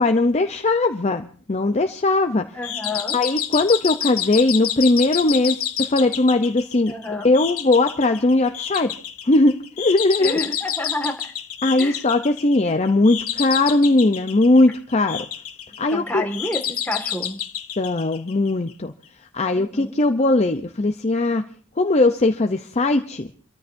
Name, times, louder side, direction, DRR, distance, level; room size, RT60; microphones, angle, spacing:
voice 1, 0.0-2.4 3.1-6.9 7.2-8.9 9.3-10.4 11.6-15.3 15.8-16.2 17.8-18.9 19.3-21.4 21.8-23.3, left 2 dB, 30° left, 7 dB, 0.6 m, -19 dB
voice 2, 2.5-3.2 6.9-7.3 10.2-11.1 11.8-12.0 15.9-17.4 19.5-19.9, left 2 dB, 10° left, 2 dB, 1.8 m, -29 dB
sound 1, 2.6-18.7, left 10 dB, 70° left, 1.6 m, -29 dB
29.0 x 13.5 x 2.6 m, 0.43 s
head